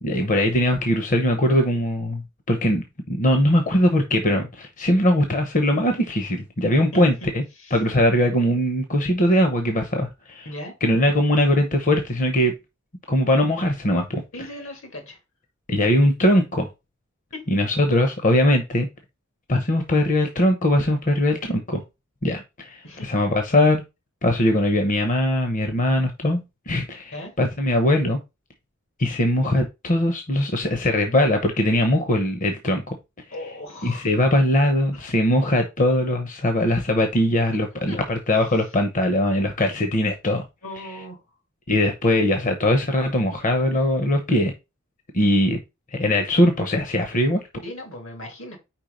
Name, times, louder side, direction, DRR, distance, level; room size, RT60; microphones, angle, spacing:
voice 1, 0.0-2.2 2.5-7.4 7.7-10.5 10.8-12.5 13.1-14.2 15.7-16.7 17.5-18.9 19.5-21.8 22.2-23.8 24.2-28.2 29.0-32.8 33.8-40.4 41.7-44.5 45.1-45.6 45.9-47.4, left 1 dB, 40° left, 0.9 m, -21 dB
voice 2, 6.9-7.3 7.6-7.8 10.4-10.7 14.3-15.2 17.3-17.5 22.8-23.1 27.1-27.3 33.3-34.1 34.9-35.1 37.9-38.0 38.5-38.6 40.6-41.2 47.6-48.6, left 1 dB, 75° left, 2.5 m, -37 dB
4.7 x 4.5 x 5.2 m
head